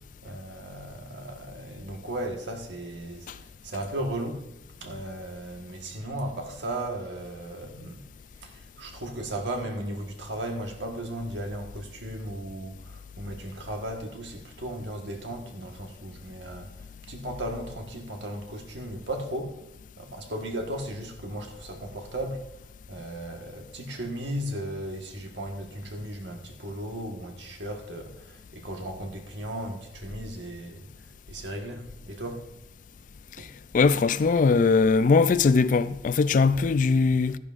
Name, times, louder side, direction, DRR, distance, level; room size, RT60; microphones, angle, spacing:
voice 1, 0.2-4.5 4.8-8.1 8.3-19.6 20.0-22.5 22.9-30.9 31.3-32.4 33.4-33.5, right 1 dB, 85° right, 1.4 m, -36 dB
voice 2, 33.7-37.4, left 4 dB, 45° left, 0.3 m, -20 dB
13.5 x 11.0 x 2.5 m
head